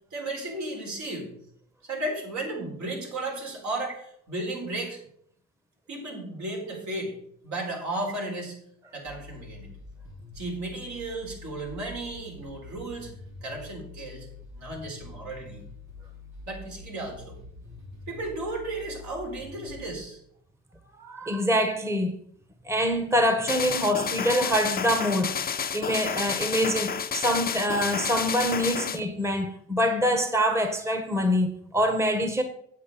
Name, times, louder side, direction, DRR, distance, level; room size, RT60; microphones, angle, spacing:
voice 1, 0.1-1.3 1.8-5.0 5.9-7.1 7.4-8.6 8.9-9.7 10.3-13.1 13.4-14.3 14.5-15.6 16.5-17.4 18.1-20.2, right 2 dB, 70° right, 4.0 m, -34 dB
sound 1, 9.0-19.9, left 3 dB, 90° right, 3.1 m, -46 dB
voice 2, 21.0-22.2 22.6-25.4 25.7-32.4, equal, 10° right, 1.1 m, -25 dB
sound 2, 23.5-29.0, left 7 dB, 30° left, 0.6 m, -30 dB
8.5 x 8.0 x 5.4 m
cardioid pair, 90°, 30 cm